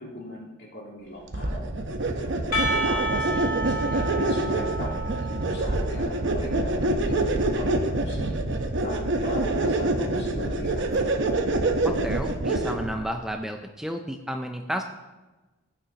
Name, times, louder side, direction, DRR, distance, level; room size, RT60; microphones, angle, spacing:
voice 1, 0.0-1.6 2.5-8.4 8.8-11.0, equal, 55° left, -3 dB, 2.7 m, -38 dB
sound 1, 1.3-13.0, right 2 dB, 60° right, 0.9 m, -26 dB
Percussion, 2.5-6.4, right 1 dB, 85° left, 1.9 m, -30 dB
voice 2, 11.8-14.8, equal, ahead, 4 dB, 0.4 m, -32 dB
15.0 x 6.8 x 2.8 m, 1.1 s
head